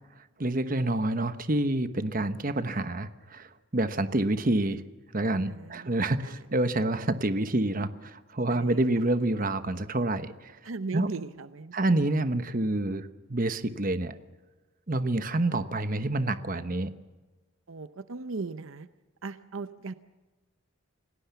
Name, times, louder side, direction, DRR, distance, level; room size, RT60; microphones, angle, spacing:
voice 1, 0.4-4.8 5.1-10.5 10.9-11.1 11.7-14.1 14.9-16.9, right 2 dB, 40° right, 10 dB, 1.1 m, -28 dB
voice 2, 5.5-5.9 6.2-6.4 8.5-8.8 10.6-11.7 17.7-18.9 19.2-20.0, right 3 dB, 75° right, 12 dB, 0.7 m, -37 dB
28.5 x 18.0 x 7.0 m, 1.2 s
head